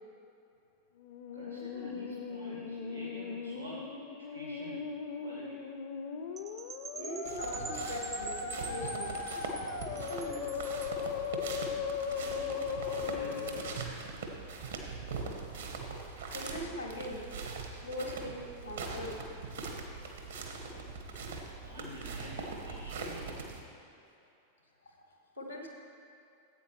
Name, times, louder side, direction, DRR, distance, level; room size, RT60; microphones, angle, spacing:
Musical instrument, 1.0-14.0, left 6 dB, 50° left, 0.6 m, -38 dB
voice 1, 1.3-5.7 12.0-13.7 20.4-21.0 21.6-23.6, equal, 85° right, -5 dB, 1.7 m, -48 dB
Percussion / Wind chime, 6.4-11.0, right 5 dB, 20° right, 0.6 m, -46 dB
voice 2, 6.9-9.1 9.9-10.7 16.3-17.2 17.8-19.2 24.9-25.0 25.3-25.7, equal, 85° left, 1 dB, 1.5 m, -41 dB
sound 1, 7.2-23.6, right 4 dB, 70° right, 1.2 m, -41 dB
15.5 x 8.5 x 3.2 m, 2.7 s
figure-of-eight pair, 90°, 0 cm